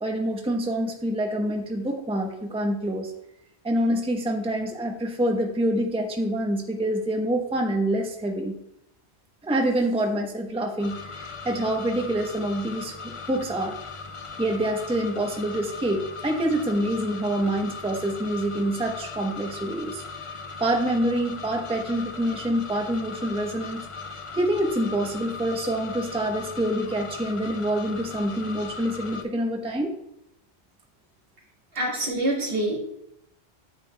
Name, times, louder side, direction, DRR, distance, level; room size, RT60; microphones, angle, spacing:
voice 1, 0.0-3.1 3.6-8.5 9.4-13.8 14.4-20.0 20.6-23.8 24.3-29.9, right 1 dB, 5° right, 2 dB, 0.7 m, -26 dB
sound 1, 10.8-29.2, left 4 dB, 40° left, 0.4 m, -39 dB
voice 2, 31.7-32.8, right 1 dB, 55° right, -7 dB, 2.2 m, -26 dB
9.1 x 8.3 x 2.3 m, 0.77 s
omnidirectional pair, 1.1 m